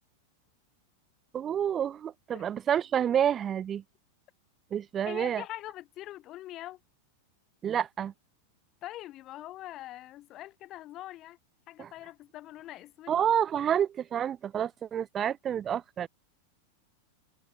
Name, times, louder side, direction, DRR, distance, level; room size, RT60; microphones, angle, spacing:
voice 1, 1.3-3.8 4.7-5.4 7.6-8.1 11.8-11.9 13.1-16.1, right 9 dB, 25° right, 3.5 m, -29 dB
voice 2, 5.1-6.8 8.8-11.4 11.7-13.1, left 15 dB, 35° left, 3.4 m, -43 dB
figure-of-eight pair, 90°, 0 cm